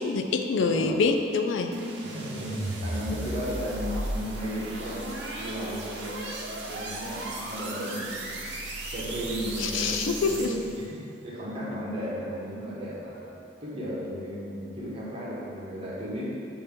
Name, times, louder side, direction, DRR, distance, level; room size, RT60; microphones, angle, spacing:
voice 1, 0.0-1.7 9.6-10.5, left 4 dB, 90° left, 5 dB, 0.4 m, -26 dB
voice 2, 0.6-0.9 2.0-5.0 5.4-8.4 8.8-13.3 13.6-16.2, equal, 30° right, -8 dB, 1.4 m, -35 dB
sound 1, 1.7-10.8, right 1 dB, 65° right, 0.8 m, -35 dB
6.7 x 2.9 x 5.1 m, 2.6 s
head